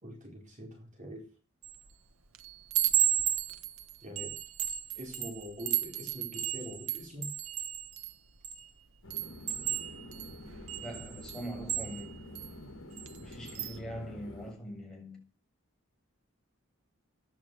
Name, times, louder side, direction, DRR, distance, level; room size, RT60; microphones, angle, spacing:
voice 1, 0.0-1.3 4.0-4.4 5.0-7.3, equal, 40° right, 4.6 m, -44 dB
Chime, 1.6-1.9 2.3-8.6 9.1-12.5 13.0-13.2 13.5-13.8, right 11 dB, 90° right, 1.3 m, -33 dB
sound 1, 9.0-14.5, left 1 dB, 85° left, 3.3 m, -47 dB
voice 2, 10.8-12.2 13.2-15.3, equal, 5° left, 7.7 m, -42 dB
15.0 x 11.0 x 6.3 m
head